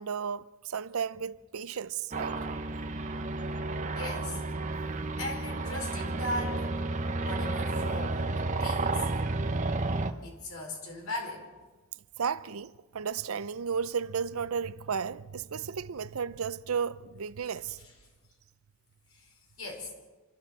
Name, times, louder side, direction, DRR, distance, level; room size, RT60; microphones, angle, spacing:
voice 1, 0.0-2.4 12.2-17.8, right 6 dB, 80° right, 0.6 m, -33 dB
sound 1, 2.1-10.1, right 2 dB, 35° right, 1.0 m, -31 dB
voice 2, 3.9-4.4 5.2-6.7 7.2-9.0 10.2-11.5 17.8-17.9 19.1-19.9, left 1 dB, 80° left, 5.2 m, -38 dB
26.0 x 13.5 x 7.3 m
head